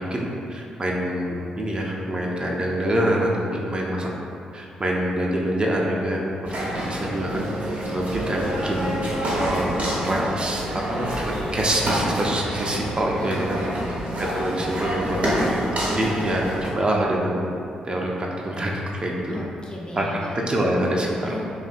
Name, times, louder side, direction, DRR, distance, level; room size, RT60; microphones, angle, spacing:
voice 1, 0.0-4.1 4.5-6.2 6.6-7.5 7.9-9.0 9.3-13.6 14.3-17.4 17.8-19.5 19.9-20.0 20.5-21.4, right 1 dB, 30° right, -2 dB, 0.4 m, -26 dB
sound 1, 6.4-16.7, equal, 55° right, 0.7 m, -27 dB
voice 2, 13.2-14.3 19.3-20.4 21.2-21.5, left 1 dB, 25° left, -3 dB, 0.5 m, -37 dB
2.6 x 2.2 x 2.5 m, 2.6 s
hypercardioid pair, 40°, 3 cm